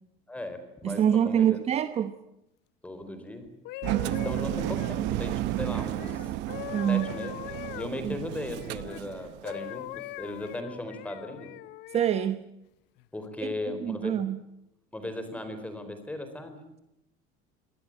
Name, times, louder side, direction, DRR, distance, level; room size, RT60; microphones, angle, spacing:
voice 1, 0.3-1.6 2.8-3.5 4.0-6.3 6.9-11.5 13.1-14.2 14.9-16.6, left 1 dB, 5° left, 4.1 m, -37 dB
voice 2, 0.8-2.1 6.7-7.1 8.0-8.2 11.9-12.4 13.7-14.4, right 9 dB, 30° right, 1.0 m, -25 dB
sound 1, 3.5-9.0 9.4-12.3 13.0-13.2, left 18 dB, 60° left, 0.8 m, -42 dB
Engine, 3.8-9.6, right 16 dB, 65° right, 0.9 m, -32 dB
25.0 x 19.0 x 8.9 m
cardioid pair, 165°, 20 cm